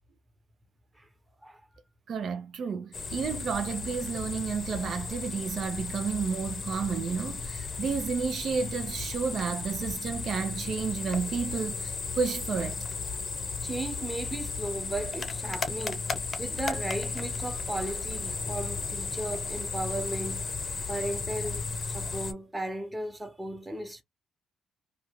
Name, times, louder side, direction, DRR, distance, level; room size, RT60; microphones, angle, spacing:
voice 1, 2.1-12.8, right 6 dB, 60° right, 0.6 m, -31 dB
sound 1, 2.9-22.3, left 4 dB, 40° left, 0.7 m, -35 dB
voice 2, 13.6-16.1 16.4-24.0, right 1 dB, 15° right, 1.0 m, -36 dB
2.5 x 2.3 x 2.9 m
cardioid pair, 90°, 0 cm